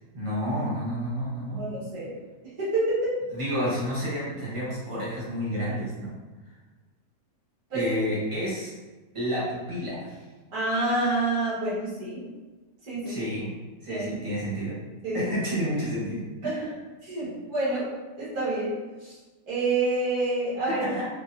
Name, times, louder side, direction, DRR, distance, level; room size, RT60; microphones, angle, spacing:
voice 1, 0.1-1.7 3.3-6.1 7.7-8.7 9.1-10.2 13.0-13.5 13.8-14.8 15.1-16.7 20.7-21.1, equal, 25° right, -8 dB, 1.1 m, -30 dB
voice 2, 1.6-2.1 2.6-3.1 7.7-7.9 10.5-12.2 12.8-13.3 13.9-14.1 14.3-14.4 15.0-15.2 16.4-16.5 17.0-17.9 18.2-18.7 19.0-19.2 19.5-20.8, right 2 dB, 80° right, -8 dB, 1.9 m, -27 dB
3.9 x 2.9 x 2.6 m, 1.2 s
omnidirectional pair, 1.6 m